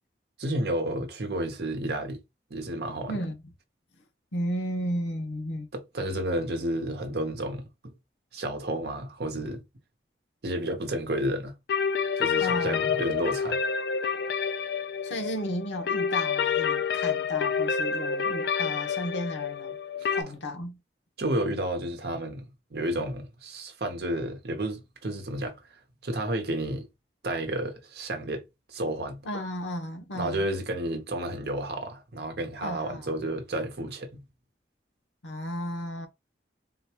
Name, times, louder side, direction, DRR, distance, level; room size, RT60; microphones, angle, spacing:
voice 1, 0.4-2.2 2.5-3.2 5.7-7.9 8.3-9.6 10.4-11.5 12.2-13.6 20.0-20.1 21.2-22.4 22.7-25.6 26.0-26.8 27.2-28.4 28.7-29.2 30.1-34.2, right 1 dB, 60° right, 0.8 m, -31 dB
voice 2, 3.1-3.5 4.3-5.7 12.4-13.1 15.0-19.8 20.1-20.8 29.2-30.5 32.6-33.1 35.2-36.1, equal, 90° left, 0.9 m, -34 dB
sound 1, 11.7-20.2, left 6 dB, 60° left, 0.3 m, -28 dB
3.9 x 2.3 x 2.8 m
head